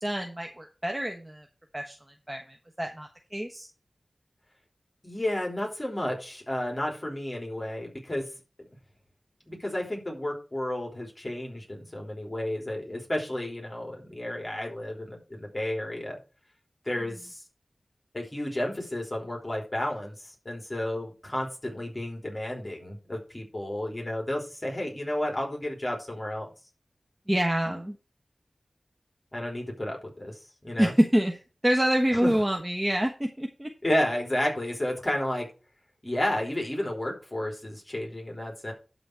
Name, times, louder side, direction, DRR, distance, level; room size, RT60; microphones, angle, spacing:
voice 1, 0.0-1.5 1.7-3.7 27.3-28.0 30.8-33.7, equal, 20° right, 3 dB, 1.2 m, -27 dB
voice 2, 5.0-8.3 8.6-8.7 9.5-16.2 16.9-17.4 18.1-26.5 29.3-30.3 30.6-30.9 32.1-32.3 33.8-35.5 36.0-38.7, left 1 dB, 25° left, 0 dB, 3.7 m, -32 dB
12.0 x 4.1 x 6.3 m, 0.33 s
wide cardioid pair, 60°, 0 cm